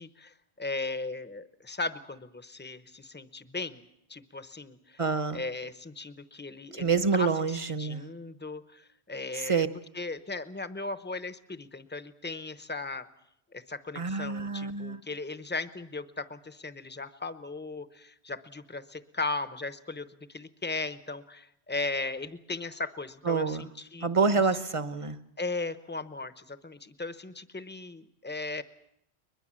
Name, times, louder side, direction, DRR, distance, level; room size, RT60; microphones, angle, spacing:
voice 1, 0.0-3.8 4.1-5.0 5.3-9.7 9.9-13.1 13.5-24.4 25.4-28.6, left 3 dB, 10° left, 12 dB, 0.8 m, -37 dB
voice 2, 5.0-5.4 6.7-8.0 9.3-9.7 14.0-15.0 23.2-23.7 24.0-25.2, right 5 dB, 30° right, 12 dB, 0.9 m, -27 dB
22.0 x 21.5 x 7.5 m, 0.76 s
omnidirectional pair, 1.1 m